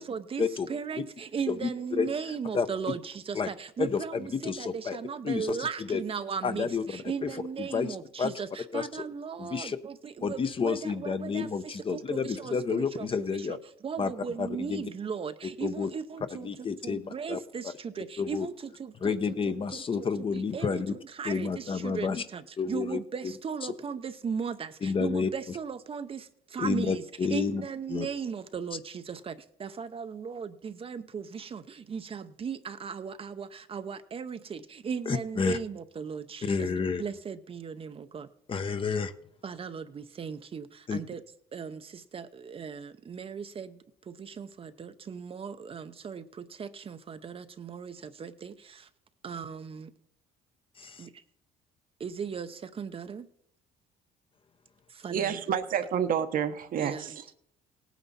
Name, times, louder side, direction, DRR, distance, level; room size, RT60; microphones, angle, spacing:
voice 1, 0.0-13.6 13.8-16.5 16.8-19.2 19.5-27.0 27.3-36.7 37.0-38.3 39.4-41.2 41.5-48.9 49.2-49.9 51.0-51.2 52.0-53.3 54.9-55.4 56.8-57.2, right 6 dB, 35° right, 0.7 m, -37 dB
voice 2, 1.5-2.1 2.5-2.7 3.3-3.5 3.8-5.0 5.2-6.0 6.4-8.3 8.7-9.0 9.4-9.8 10.2-13.6 14.0-14.1 14.4-14.8 15.6-15.9 16.4-17.4 18.2-18.5 19.0-20.9 21.2-22.2 22.6-23.0 23.6-23.7 24.8-25.3 26.6-27.6 27.9-28.1 35.1-35.6 36.4-37.0 38.5-39.1 40.9-41.0 50.8-51.1, left 5 dB, 30° left, 0.8 m, -30 dB
voice 3, 55.1-57.3, right 8 dB, 55° right, 1.0 m, -29 dB
18.0 x 9.1 x 4.1 m
cardioid pair, 110°, 17 cm